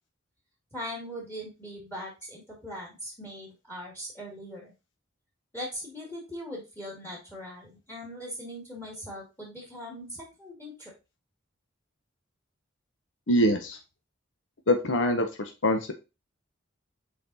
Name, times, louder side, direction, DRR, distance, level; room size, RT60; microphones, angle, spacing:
voice 1, 0.7-4.7 5.5-10.9, equal, 10° left, -1 dB, 2.1 m, -40 dB
voice 2, 13.3-13.8 14.7-15.9, equal, 65° left, 6 dB, 0.9 m, -24 dB
5.7 x 4.4 x 4.0 m, 0.27 s
head